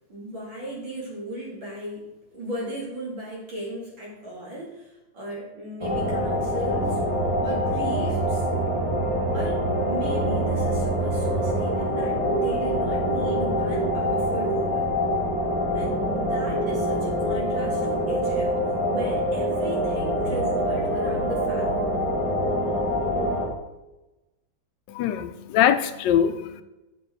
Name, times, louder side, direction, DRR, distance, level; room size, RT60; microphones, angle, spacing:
voice 1, 0.1-2.1 2.3-7.0 7.4-8.5 9.3-14.9 15.7-18.5 18.9-21.9, right 1 dB, 90° right, -4 dB, 3.4 m, -36 dB
sound 1, 5.8-23.5, equal, 15° right, 1.9 m, -25 dB
voice 2, 24.9-26.6, left 9 dB, 75° left, 10 dB, 1.2 m, -22 dB
7.6 x 6.7 x 4.4 m, 1.0 s
omnidirectional pair, 2.1 m